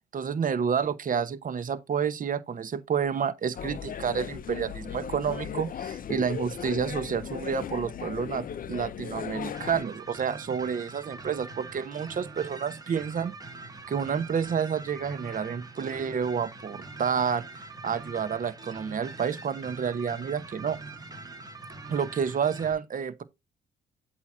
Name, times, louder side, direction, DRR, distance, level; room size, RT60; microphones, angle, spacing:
voice 1, 0.1-13.3 13.9-20.8 21.9-23.2, right 7 dB, 45° right, 0.9 m, -29 dB
sound 1, 3.6-9.8, left 8 dB, 45° left, 0.5 m, -37 dB
sound 2, 9.5-22.7, right 3 dB, 20° right, 1.6 m, -43 dB
8.4 x 2.9 x 6.1 m
cardioid pair, 90°, 20 cm